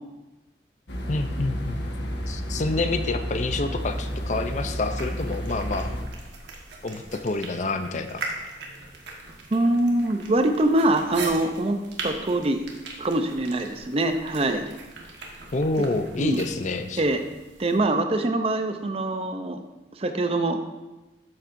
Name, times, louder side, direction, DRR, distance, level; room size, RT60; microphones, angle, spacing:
sound 1, 0.9-6.0, equal, 75° left, 1.3 m, -31 dB
voice 1, 1.1-1.8 2.3-5.9 6.8-8.2 15.5-17.0, left 2 dB, 40° left, 8 dB, 0.5 m, -28 dB
sound 2, 3.8-17.8, right 3 dB, 75° right, 1.5 m, -40 dB
voice 2, 9.5-12.7 13.0-14.7 16.2-16.4 17.0-17.2 17.6-19.6 19.9-20.6, right 1 dB, 35° right, 7 dB, 0.6 m, -24 dB
12.5 x 7.3 x 2.6 m, 1.1 s
head